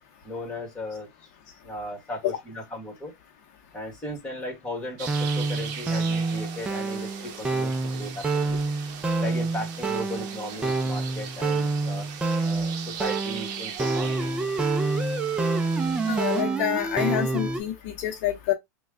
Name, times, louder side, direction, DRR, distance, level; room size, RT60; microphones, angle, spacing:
voice 1, 0.2-1.3 1.6-3.1 3.7-8.6 9.2-12.1 12.4-14.3, left 1 dB, 10° left, 1.5 m, -36 dB
sound 1, 5.0-17.6, right 3 dB, 10° right, 0.5 m, -27 dB
sound 2, 5.0-16.4, right 8 dB, 50° right, 0.8 m, -40 dB
voice 2, 16.1-18.5, left 11 dB, 55° left, 0.7 m, -27 dB
3.1 x 2.2 x 3.5 m
supercardioid pair, 145°, 9 cm